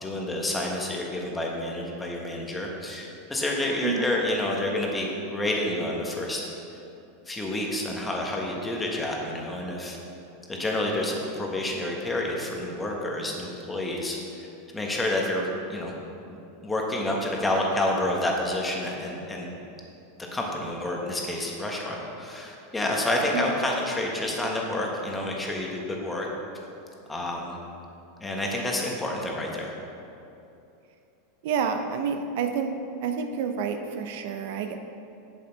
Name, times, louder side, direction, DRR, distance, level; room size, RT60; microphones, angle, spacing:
voice 1, 0.0-6.5 7.3-10.0 10.5-14.5 14.7-15.9 16.3-16.4 16.6-19.5 20.3-26.3 27.1-27.6 28.2-29.7, left 1 dB, 10° left, -1 dB, 1.3 m, -29 dB
voice 2, 31.4-32.7 33.0-34.9, right 6 dB, 65° right, 6 dB, 0.6 m, -29 dB
7.5 x 6.6 x 4.5 m, 2.7 s
supercardioid pair, 125°, 0 cm